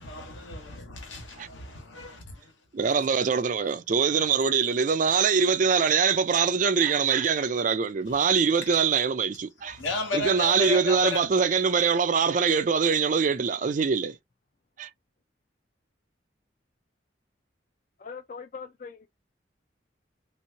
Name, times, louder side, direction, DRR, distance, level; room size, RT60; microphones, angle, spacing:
voice 1, 0.0-2.5 2.8-2.9 8.1-8.2 9.7-11.3, left 3 dB, 85° left, 1.4 m, -34 dB
voice 2, 2.7-9.8 10.1-14.2 14.8-14.9, right 6 dB, 40° right, 0.4 m, -23 dB
voice 3, 18.0-19.1, left 5 dB, 45° left, 0.4 m, -41 dB
3.3 x 2.9 x 2.7 m
head